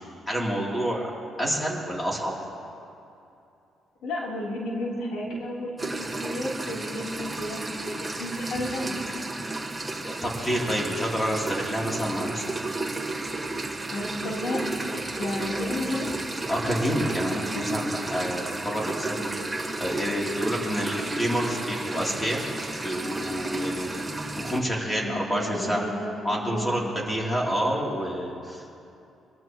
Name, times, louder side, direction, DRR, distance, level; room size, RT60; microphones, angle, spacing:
voice 1, 0.3-1.1 1.4-2.3 9.9-12.5 16.5-19.3 19.8-22.4 22.8-23.9 24.4-25.8 26.2-28.8, equal, 15° left, -3 dB, 3.1 m, -28 dB
voice 2, 4.0-9.0 13.9-14.6 14.9-16.2 25.0-26.9, left 1 dB, 85° left, -4 dB, 3.5 m, -32 dB
sound 1, 5.8-24.6, right 2 dB, 15° right, 1.6 m, -32 dB
25.0 x 13.5 x 3.1 m, 2.7 s
cardioid pair, 90°, 0 cm